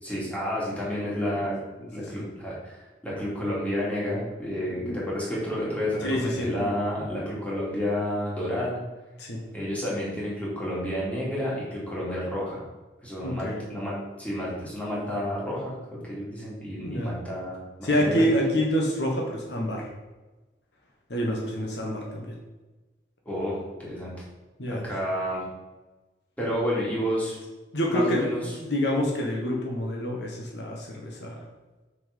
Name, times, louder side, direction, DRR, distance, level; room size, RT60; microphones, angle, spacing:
voice 1, 0.0-1.6 1.9-8.8 9.5-12.6 13.0-15.7 16.1-18.2 23.2-24.1 24.7-25.4 26.4-27.4 27.9-28.4, equal, 10° left, -6 dB, 2.7 m, -30 dB
voice 2, 1.0-1.3 1.8-2.3 4.8-5.0 6.0-6.7 9.2-9.4 13.2-13.6 16.8-17.1 17.8-19.9 21.1-22.4 24.6-24.8 27.7-31.4, equal, 65° left, -1 dB, 1.4 m, -27 dB
6.3 x 6.1 x 5.4 m, 1.2 s
head